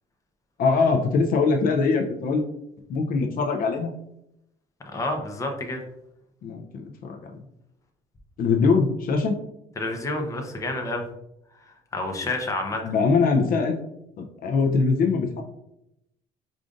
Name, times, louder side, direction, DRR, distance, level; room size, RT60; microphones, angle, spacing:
voice 1, 0.6-2.4 2.9-3.9 6.4-7.2 8.4-9.3 12.8-13.8 14.2-15.4, left 4 dB, 60° left, 3 dB, 0.5 m, -22 dB
voice 2, 4.9-5.8 9.8-11.0 11.6-12.9, left 2 dB, 20° left, 2 dB, 0.7 m, -29 dB
5.0 x 2.5 x 2.5 m, 0.81 s
cardioid pair, 110°, 17 cm